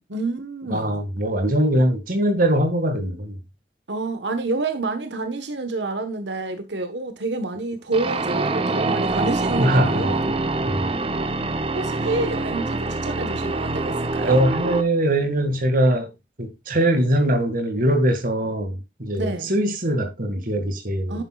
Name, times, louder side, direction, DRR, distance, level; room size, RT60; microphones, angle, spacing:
voice 1, 0.1-1.0 3.9-10.3 11.7-14.4 19.1-19.5 21.1-21.2, right 3 dB, 90° right, 1.3 m, -28 dB
voice 2, 0.7-3.4 9.6-10.4 10.6-10.9 14.2-16.1 16.4-21.2, right 1 dB, 50° right, 2.1 m, -22 dB
sound 1, 7.9-14.8, right 2 dB, 35° right, 0.9 m, -25 dB
10.5 x 8.9 x 2.4 m
head